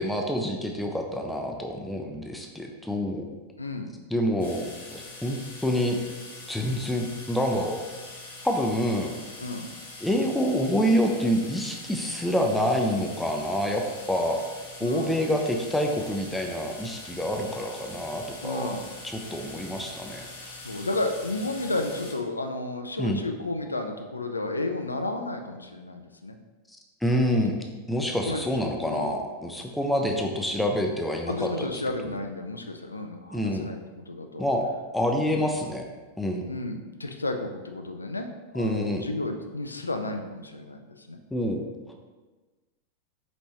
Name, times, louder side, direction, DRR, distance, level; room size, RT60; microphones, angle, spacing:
voice 1, 0.0-3.3 4.1-4.7 4.9-6.0 6.5-7.8 8.4-9.1 10.0-14.4 14.8-18.8 19.0-20.3 23.0-23.2 27.0-27.6 27.9-31.7 32.1-32.2 33.3-33.7 34.4-34.7 34.9-35.8 36.2-36.4 38.5-39.1 41.3-41.6, equal, 5° left, 2 dB, 0.4 m, -27 dB
voice 2, 3.6-3.9 9.4-9.7 14.8-15.1 18.4-18.8 20.3-26.4 27.1-27.3 28.2-29.2 30.0-30.2 31.3-34.4 35.3-35.5 36.4-38.3 38.5-41.2, left 2 dB, 80° left, 5 dB, 0.3 m, -32 dB
sound 1, 4.4-22.1, left 2 dB, 65° left, 1.2 m, -43 dB
5.2 x 3.0 x 2.9 m, 1.3 s
figure-of-eight pair, 90°, 0 cm